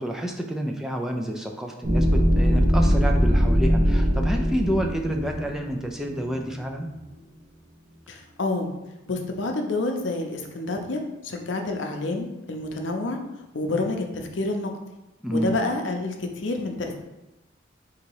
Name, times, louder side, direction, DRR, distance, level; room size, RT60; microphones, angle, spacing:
voice 1, 0.0-6.9 15.2-15.5, equal, 5° right, 2 dB, 0.4 m, -29 dB
sound 1, 1.8-6.4, equal, 35° right, 1.0 m, -21 dB
voice 2, 8.1-8.7 9.1-13.2 13.5-14.7 15.3-17.0, left 2 dB, 65° left, 3 dB, 0.6 m, -28 dB
3.9 x 2.8 x 4.6 m, 0.99 s
head